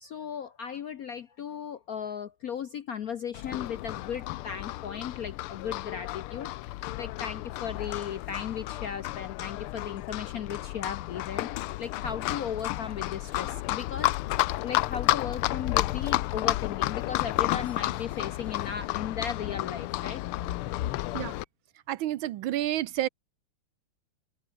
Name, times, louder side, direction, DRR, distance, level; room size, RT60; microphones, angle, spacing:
voice 1, 0.0-14.2 14.6-20.2, left 8 dB, 65° left, 0.9 m, -36 dB
Livestock farm animals working animals, 3.3-21.5, left 17 dB, 80° left, 1.5 m, -32 dB
voice 2, 21.9-23.1, right 13 dB, 70° right, 1.4 m, -29 dB
open air
omnidirectional pair, 2.4 m